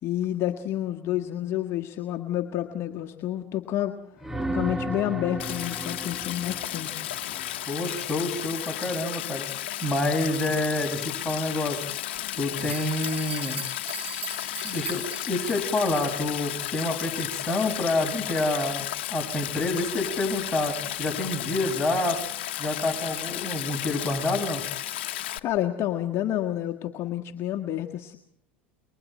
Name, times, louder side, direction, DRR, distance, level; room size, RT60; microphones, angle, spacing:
voice 1, 0.0-4.0 4.5-7.1 25.4-28.2, left 12 dB, 45° left, 2 dB, 1.7 m, -29 dB
sound 1, 4.2-8.0 12.5-12.7, right 1 dB, 5° right, 1.4 m, -35 dB
Stream, 5.4-25.4, left 13 dB, 70° left, 1.1 m, -33 dB
voice 2, 7.7-9.4 9.8-11.8 12.4-13.6 14.6-22.2 22.6-24.6, left 2 dB, 10° left, 1 dB, 6.9 m, -28 dB
sound 2, 12.2-12.3 12.6-16.3, right 7 dB, 30° right, 2.7 m, -40 dB
29.0 x 23.5 x 4.5 m, 0.72 s
hypercardioid pair, 85°, 6 cm